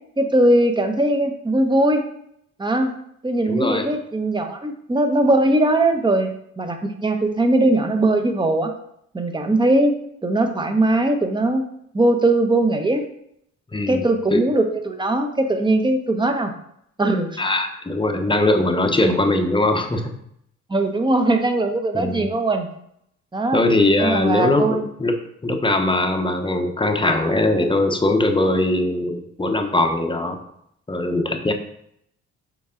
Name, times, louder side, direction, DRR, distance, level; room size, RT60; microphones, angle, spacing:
voice 1, 0.2-2.0 2.6-2.9 3.2-8.7 9.1-9.9 10.2-11.6 11.9-13.0 13.9-16.5 17.0-17.4 19.0-19.2 20.7-22.7 23.3-23.6 24.0-24.9, right 1 dB, 15° right, 5 dB, 1.0 m, -20 dB
voice 2, 3.5-3.9 13.7-14.0 14.3-14.4 17.4-20.1 21.9-22.3 23.5-25.2 25.4-30.4 30.9-31.5, left 2 dB, 15° left, 4 dB, 0.9 m, -20 dB
7.0 x 4.6 x 3.8 m, 0.73 s
cardioid pair, 90°, 30 cm